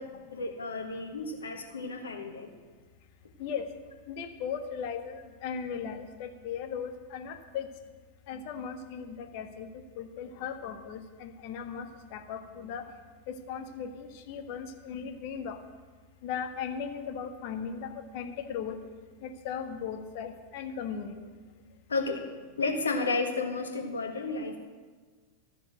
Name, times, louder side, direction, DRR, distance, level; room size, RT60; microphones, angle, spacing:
voice 1, 0.0-2.5 21.9-22.2 22.6-24.6, left 3 dB, 70° left, 4 dB, 1.6 m, -32 dB
voice 2, 4.1-7.7 8.3-12.9 13.3-15.6 16.2-18.8 19.2-21.2, left 7 dB, 45° left, 7 dB, 1.3 m, -37 dB
13.5 x 6.9 x 7.9 m, 1.5 s
figure-of-eight pair, 90°, 0 cm